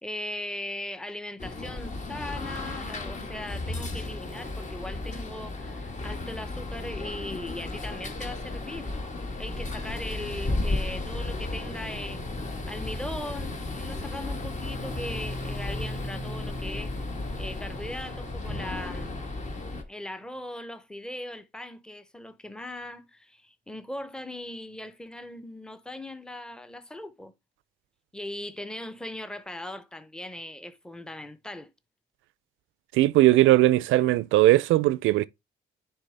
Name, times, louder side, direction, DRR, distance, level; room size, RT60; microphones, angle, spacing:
voice 1, 0.0-8.9 9.4-12.2 12.7-17.1 17.4-19.1 19.9-27.3 28.1-31.7, left 1 dB, 5° left, 0.7 m, -39 dB
sound 1, 1.4-19.8, left 2 dB, 40° left, 1.4 m, -34 dB
voice 2, 32.9-35.3, right 16 dB, 85° right, 0.4 m, -19 dB
9.8 x 3.6 x 3.3 m
cardioid pair, 90°, 20 cm